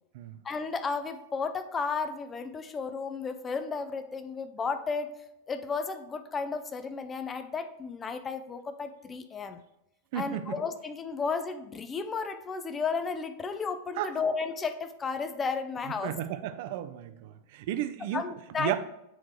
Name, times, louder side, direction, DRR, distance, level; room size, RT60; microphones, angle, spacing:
voice 1, 0.4-5.2 5.5-9.6 10.1-16.1 18.1-18.8, left 5 dB, 20° left, 10 dB, 0.5 m, -33 dB
voice 2, 10.1-10.6 14.0-14.1 16.0-18.2 18.6-18.7, right 12 dB, 50° right, 11 dB, 0.4 m, -33 dB
7.9 x 4.3 x 3.0 m, 0.84 s
figure-of-eight pair, 90°, 0 cm